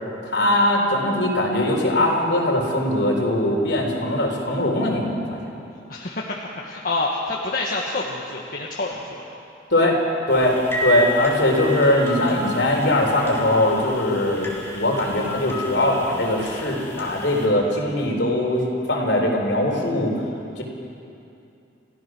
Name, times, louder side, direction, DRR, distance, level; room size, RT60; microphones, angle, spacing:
voice 1, 0.2-5.4 9.7-10.0 10.3-18.6 18.9-20.1 20.6-20.7, left 1 dB, 65° left, 0 dB, 3.9 m, -21 dB
voice 2, 5.9-9.2, left 2 dB, 50° left, -3 dB, 1.7 m, -27 dB
sound 1, 10.3-17.5, equal, 15° left, 3.1 m, -32 dB
30.0 x 15.5 x 6.3 m, 2.7 s
head